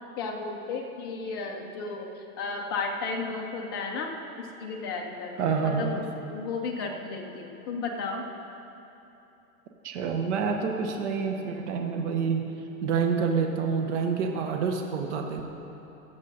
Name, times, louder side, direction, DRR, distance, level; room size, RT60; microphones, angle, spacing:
voice 1, 0.2-5.4 5.6-8.3, left 4 dB, 20° left, 1 dB, 0.4 m, -34 dB
voice 2, 5.4-6.1 9.8-12.4 12.8-15.5, right 5 dB, 50° right, 3 dB, 1.1 m, -27 dB
16.0 x 7.4 x 4.0 m, 2.9 s
hypercardioid pair, 140°, 45 cm